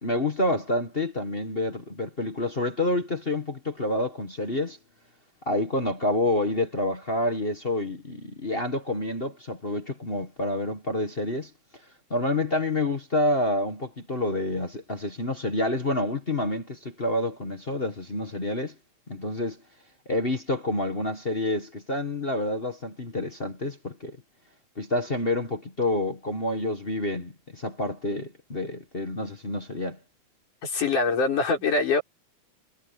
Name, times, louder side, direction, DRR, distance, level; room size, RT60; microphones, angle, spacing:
voice 1, 0.0-4.8 5.4-11.5 12.1-18.7 19.1-19.6 20.0-24.2 24.8-30.0, left 1 dB, 30° left, 1.0 m, -28 dB
voice 2, 30.6-32.0, left 4 dB, 85° left, 6.9 m, -23 dB
omnidirectional pair, 3.5 m